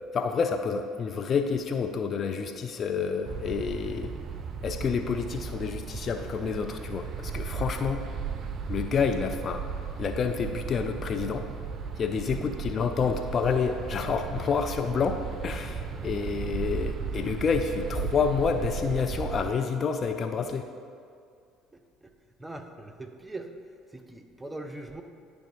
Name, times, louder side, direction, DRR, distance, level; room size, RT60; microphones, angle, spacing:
voice 1, 0.1-4.1 4.6-8.0 8.7-9.6 10.0-11.5 12.0-20.7, left 6 dB, 45° left, 7 dB, 0.5 m, -28 dB
sound 1, 3.3-19.5, right 6 dB, 45° right, 0.5 m, -35 dB
voice 2, 12.3-12.7 21.7-22.1 22.4-23.5 23.9-25.0, right 2 dB, 10° right, 4 dB, 0.8 m, -42 dB
10.0 x 3.5 x 5.3 m, 2.3 s
hypercardioid pair, 60°, 0 cm